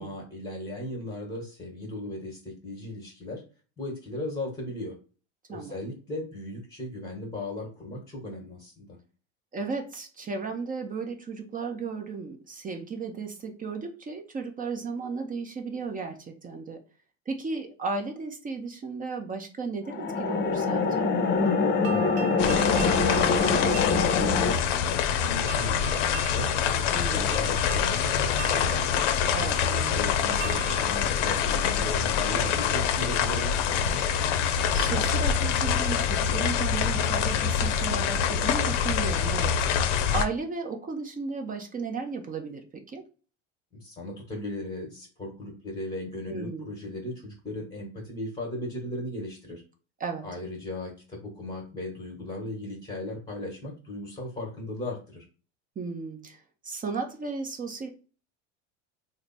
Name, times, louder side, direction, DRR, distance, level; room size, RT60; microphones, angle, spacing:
voice 1, 0.0-3.4 3.8-5.0 5.5-9.0 21.9-25.0 25.3-26.5 26.9-28.8 29.7-34.1 43.7-49.6 50.2-55.2, left 1 dB, 15° left, -1 dB, 1.2 m, -37 dB
voice 2, 9.5-16.8 17.3-21.1 26.9-27.4 29.3-30.0 34.7-39.6 39.9-43.0 46.3-46.7 50.0-50.2 55.8-57.9, right 4 dB, 25° right, 4 dB, 0.7 m, -35 dB
sound 1, 19.9-24.5, left 4 dB, 30° left, 0.7 m, -24 dB
sound 2, 21.5-32.3, right 9 dB, 60° right, 0.6 m, -41 dB
sound 3, 22.4-40.2, left 8 dB, 80° left, 0.6 m, -25 dB
3.2 x 2.1 x 4.0 m, 0.37 s
supercardioid pair, 100°, 36 cm